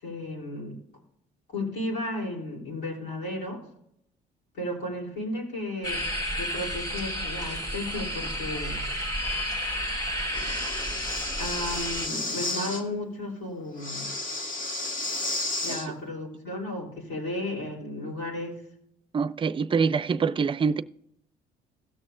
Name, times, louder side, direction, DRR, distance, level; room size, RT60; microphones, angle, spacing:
voice 1, 0.0-0.8 1.5-3.6 4.5-6.0 6.4-8.8 11.4-14.1 15.6-18.6, left 1 dB, 75° left, 3.3 m, -34 dB
sound 1, 5.8-12.1, equal, 20° left, 1.7 m, -31 dB
Breathing, 10.3-12.8 13.8-15.9, left 2 dB, 50° left, 2.0 m, -32 dB
voice 2, 19.1-20.8, right 5 dB, 30° right, 0.5 m, -25 dB
17.0 x 6.4 x 2.5 m
cardioid pair, 110°, 17 cm